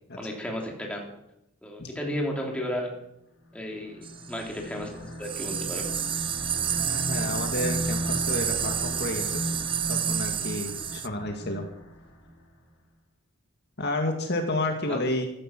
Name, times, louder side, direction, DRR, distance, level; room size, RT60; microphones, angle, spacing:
voice 1, 0.2-1.0 1.6-2.9 3.5-5.9 14.9-15.0, equal, 5° left, 0 dB, 3.2 m, -33 dB
sound 1, 3.7-12.3, equal, 70° left, 4.8 m, -35 dB
sound 2, 4.0-4.4 5.2-11.1, right 10 dB, 25° right, 0.5 m, -30 dB
voice 2, 6.7-9.2 9.9-11.6 13.8-15.3, left 1 dB, 50° left, 3 dB, 2.1 m, -30 dB
14.5 x 14.0 x 6.1 m, 0.83 s
head